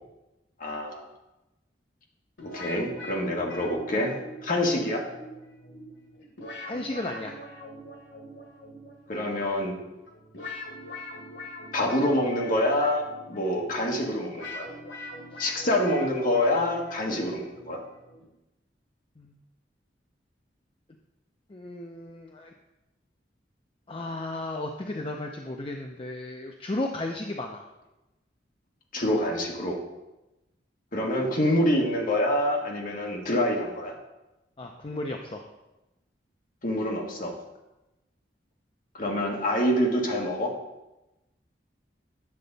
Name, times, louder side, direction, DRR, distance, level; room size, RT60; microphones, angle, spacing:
voice 1, 0.6-1.1 2.5-5.1 9.1-9.7 11.7-14.7 15.4-17.8 28.9-29.8 30.9-33.9 36.6-37.4 38.9-40.5, left 1 dB, 50° left, 0 dB, 1.6 m, -26 dB
sound 1, 2.4-18.3, left 1 dB, 90° left, 1.7 m, -43 dB
voice 2, 6.6-7.4 15.3-15.7 19.2-19.4 21.5-22.5 23.9-27.6 34.6-35.4, left 2 dB, 30° left, 2 dB, 0.6 m, -34 dB
9.6 x 6.7 x 4.0 m, 0.99 s
head